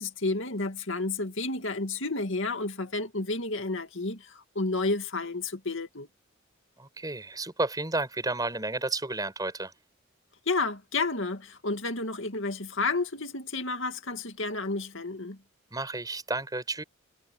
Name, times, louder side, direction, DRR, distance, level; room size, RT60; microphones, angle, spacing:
voice 1, 0.0-6.1 10.5-15.4, left 3 dB, 65° left, 2.4 m, -31 dB
voice 2, 6.8-9.7 15.7-16.8, right 2 dB, 20° right, 5.8 m, -32 dB
head